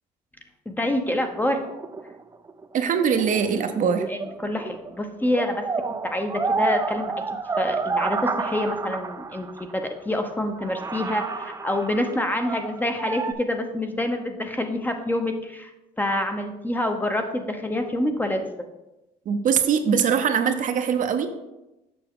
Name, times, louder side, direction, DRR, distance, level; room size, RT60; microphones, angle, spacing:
voice 1, 0.7-1.6 4.1-5.7 6.0-7.1 7.6-15.7 16.0-18.4, left 1 dB, 10° left, 5 dB, 0.7 m, -27 dB
sound 1, 1.4-4.9 5.2-9.7 10.3-10.4 10.6-13.3, right 4 dB, 20° right, 0.4 m, -30 dB
voice 2, 2.7-4.1 19.3-21.3, right 7 dB, 50° right, 7 dB, 0.7 m, -22 dB
7.0 x 5.8 x 3.6 m, 0.97 s
cardioid pair, 110°, 17 cm